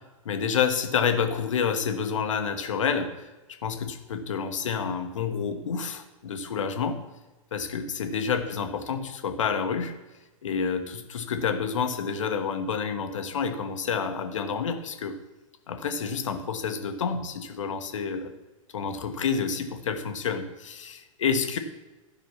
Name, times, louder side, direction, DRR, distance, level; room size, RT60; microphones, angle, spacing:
voice 1, 0.2-3.3 3.6-7.0 7.5-10.0 10.4-15.1 15.7-18.3 18.7-21.6, left 6 dB, 65° left, 7 dB, 1.2 m, -29 dB
12.0 x 5.5 x 5.8 m, 1.1 s
figure-of-eight pair, 100°, 18 cm